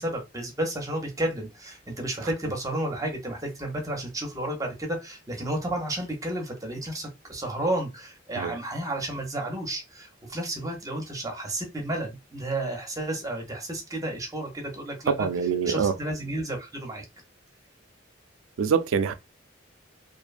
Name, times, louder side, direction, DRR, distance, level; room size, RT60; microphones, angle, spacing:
voice 1, 0.0-15.3 15.7-17.0, right 1 dB, 15° right, 0.6 m, -32 dB
voice 2, 15.1-15.9 18.6-19.1, right 6 dB, 85° right, 0.4 m, -24 dB
2.5 x 2.2 x 2.4 m
head